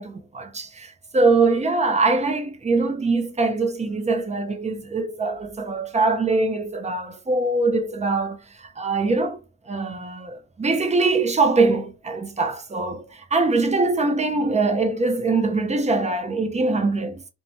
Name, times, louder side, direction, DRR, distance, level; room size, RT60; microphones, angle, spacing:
voice 1, 0.0-9.4 9.7-17.2, right 3 dB, 15° right, 0.6 m, -23 dB
2.5 x 2.3 x 3.1 m
supercardioid pair, 70°, 41 cm